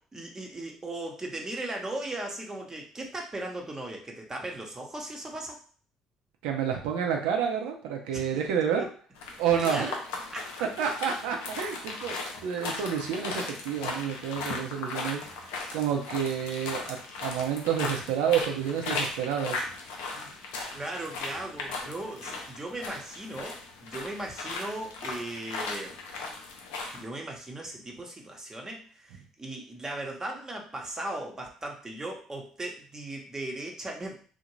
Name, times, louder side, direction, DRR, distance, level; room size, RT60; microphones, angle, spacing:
voice 1, 0.1-5.6 8.1-8.2 9.6-10.0 10.3-10.5 20.1-20.3 20.7-26.0 26.9-34.2, right 1 dB, 25° right, 0 dB, 0.8 m, -37 dB
voice 2, 6.4-8.9 9.4-10.0 10.6-19.7, right 8 dB, 75° right, 2 dB, 0.5 m, -29 dB
sound 1, 9.2-27.0, left 3 dB, 80° left, 0.5 m, -37 dB
2.6 x 2.1 x 3.1 m, 0.43 s
hypercardioid pair, 55°, 2 cm